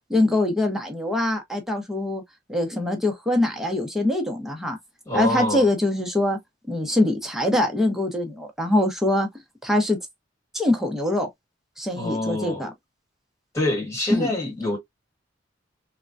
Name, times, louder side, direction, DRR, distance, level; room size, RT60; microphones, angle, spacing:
voice 1, 0.1-2.2 2.5-4.8 5.1-6.4 6.7-9.3 9.6-10.0 10.5-11.3 11.8-12.7 14.1-14.3, left 1 dB, ahead, 0.8 m, -23 dB
voice 2, 5.0-5.7 11.9-12.6 13.5-14.8, left 2 dB, 15° left, 1.6 m, -26 dB
3.6 x 2.2 x 2.5 m
head